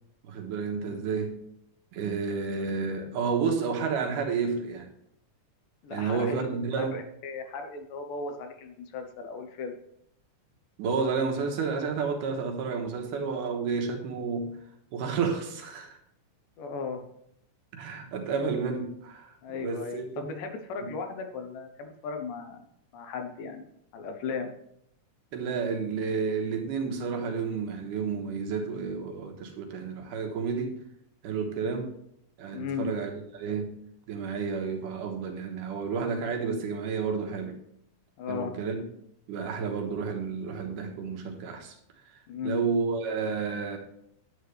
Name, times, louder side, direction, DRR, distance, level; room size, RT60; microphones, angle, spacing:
voice 1, 0.2-1.4 1.9-4.9 5.9-7.0 10.8-14.6 14.9-16.0 17.7-20.2 20.8-20.9 25.3-30.8 31.2-31.9 32.4-33.8 34.1-37.5 38.3-38.8 39.3-41.8 42.4-43.8, right 5 dB, 80° right, 3 dB, 2.7 m, -31 dB
voice 2, 5.8-6.5 6.8-9.7 16.6-17.0 19.4-22.7 22.9-23.7 23.9-24.5 32.5-32.9 38.2-38.5 42.3-42.6, left 5 dB, 90° left, 5 dB, 2.7 m, -36 dB
10.0 x 8.1 x 3.3 m, 0.73 s
omnidirectional pair, 3.7 m